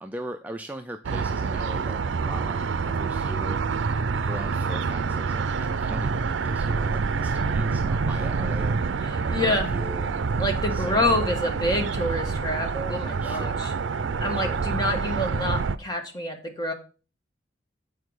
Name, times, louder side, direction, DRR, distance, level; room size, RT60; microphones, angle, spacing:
voice 1, 0.0-4.0 4.2-10.4 10.7-11.2 13.2-13.7 14.3-14.6, right 1 dB, 10° right, 5 dB, 0.3 m, -40 dB
sound 1, 1.0-15.8, right 4 dB, 75° right, 0.5 m, -27 dB
voice 2, 9.0-9.7 10.4-13.7 14.2-16.7, left 1 dB, 20° left, 3 dB, 1.3 m, -27 dB
8.5 x 4.5 x 4.8 m, 0.35 s
head